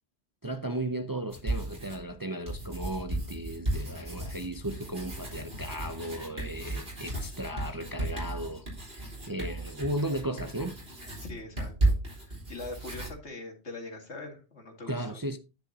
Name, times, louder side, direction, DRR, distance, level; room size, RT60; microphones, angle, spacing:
voice 1, 0.4-10.8 14.9-15.4, right 1 dB, 30° right, 0.4 m, -35 dB
sound 1, 1.3-2.1 2.5-13.1, right 2 dB, 55° right, 4.2 m, -34 dB
voice 2, 11.2-15.2, left 2 dB, 75° left, 2.5 m, -43 dB
10.0 x 8.2 x 2.8 m
omnidirectional pair, 1.2 m